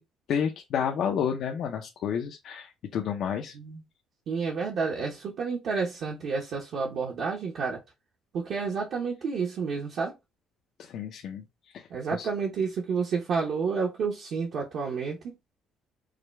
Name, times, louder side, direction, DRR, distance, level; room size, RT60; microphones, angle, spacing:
voice 1, 0.3-3.5 10.8-11.4 11.7-12.3, left 8 dB, 55° left, 0.6 m, -30 dB
voice 2, 4.3-7.8 8.3-10.1 11.9-15.4, right 5 dB, 55° right, 1.0 m, -30 dB
4.9 x 2.2 x 3.3 m
cardioid pair, 140°, 0 cm